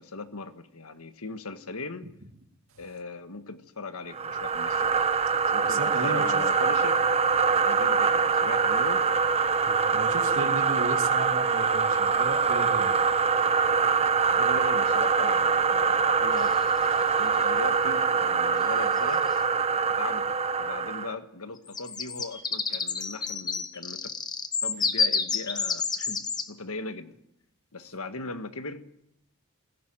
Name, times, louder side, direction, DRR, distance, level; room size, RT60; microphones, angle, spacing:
voice 1, 0.0-2.1 2.8-5.0 5.5-7.1 7.6-9.1 14.3-16.6 17.0-19.3 19.9-24.0 24.6-27.1 27.7-28.9, left 3 dB, 85° left, 9 dB, 1.5 m, -39 dB
sound 1, 4.1-21.1, right 5 dB, 30° right, 0.9 m, -24 dB
voice 2, 5.6-6.3 9.9-13.0, right 2 dB, 70° right, 4 dB, 2.3 m, -34 dB
sound 2, 12.0-12.1 16.4-16.9 18.6-18.7 19.0-19.3 21.6-26.5, left 5 dB, 20° left, 1.2 m, -30 dB
20.5 x 16.5 x 9.0 m, 0.79 s
head